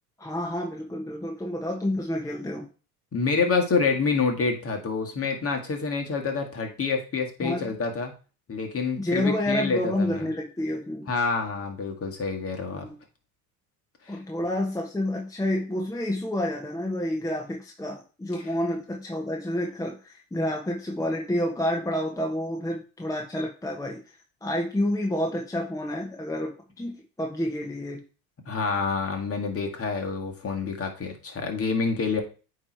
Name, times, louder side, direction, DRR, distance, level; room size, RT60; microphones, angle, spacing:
voice 1, 0.2-2.7 7.4-7.7 8.9-11.1 12.7-13.0 14.1-24.0 24.4-28.0, left 1 dB, 5° left, 0 dB, 1.2 m, -29 dB
voice 2, 3.1-8.1 8.5-10.3 11.1-12.9 14.1-14.2 28.5-32.2, left 4 dB, 30° left, 3 dB, 1.9 m, -27 dB
8.7 x 3.3 x 4.6 m, 0.35 s
hypercardioid pair, 90°, 46 cm